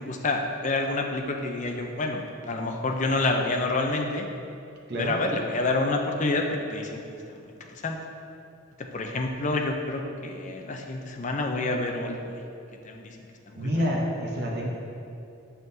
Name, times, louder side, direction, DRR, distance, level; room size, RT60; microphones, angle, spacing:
voice 1, 0.0-4.3 5.0-7.0 7.4-8.0 8.9-12.4 12.8-13.2 13.5-13.9, left 2 dB, 35° left, 3 dB, 0.5 m, -28 dB
voice 2, 13.6-14.7, equal, 50° right, -3 dB, 0.9 m, -27 dB
7.4 x 5.6 x 2.7 m, 2.7 s
head